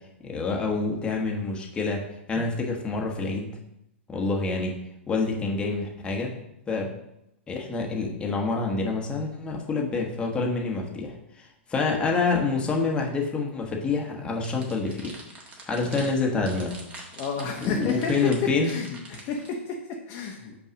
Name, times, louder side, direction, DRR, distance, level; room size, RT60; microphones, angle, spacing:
voice 1, 0.2-2.0 2.3-3.6 4.1-4.8 5.1-6.3 6.7-6.9 7.5-15.2 15.6-16.8 17.8-18.7, left 3 dB, 15° left, 0 dB, 1.2 m, -27 dB
sound 1, 14.4-19.5, right 2 dB, 20° right, 1.6 m, -44 dB
voice 2, 17.1-20.6, left 5 dB, 35° left, 0 dB, 1.0 m, -31 dB
5.5 x 4.7 x 6.3 m, 0.84 s
hypercardioid pair, 135°, 7 cm